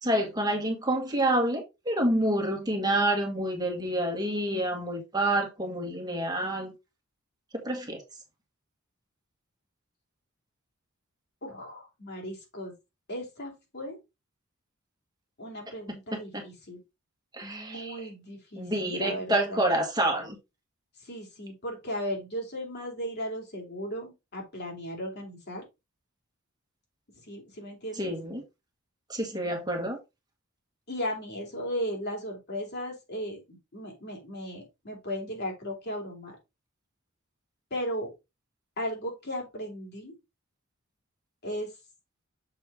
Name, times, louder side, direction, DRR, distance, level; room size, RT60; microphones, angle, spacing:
voice 1, 0.0-6.7 7.6-8.0 16.3-16.4 17.3-17.9 18.5-20.4 28.0-28.4 29.1-30.0, right 1 dB, 20° right, 1.7 m, -28 dB
voice 2, 11.4-12.7 13.1-14.0 15.4-16.8 17.4-19.7 21.0-25.6 27.3-28.1 30.9-36.3 37.7-38.1 38.8-40.1 41.4-41.7, equal, 50° left, 3.0 m, -36 dB
6.9 x 5.4 x 3.5 m
head